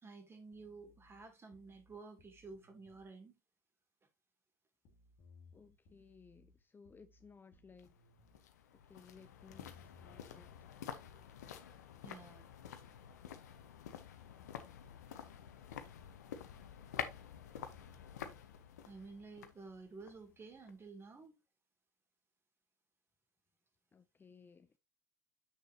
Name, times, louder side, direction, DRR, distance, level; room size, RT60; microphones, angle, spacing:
voice 1, 0.0-3.4 12.0-12.5 18.8-21.4, right 4 dB, 25° right, 2.6 m, -52 dB
sound 1, 0.5-3.1 4.8-8.5 9.5-11.2, left 3 dB, 55° left, 2.0 m, -65 dB
voice 2, 5.5-7.9 8.9-10.7 23.9-24.7, left 5 dB, 20° left, 0.6 m, -60 dB
sound 2, 7.8-20.9 21.2-21.3, left 9 dB, 75° left, 0.9 m, -49 dB
7.6 x 6.4 x 2.8 m
figure-of-eight pair, 65°, 9 cm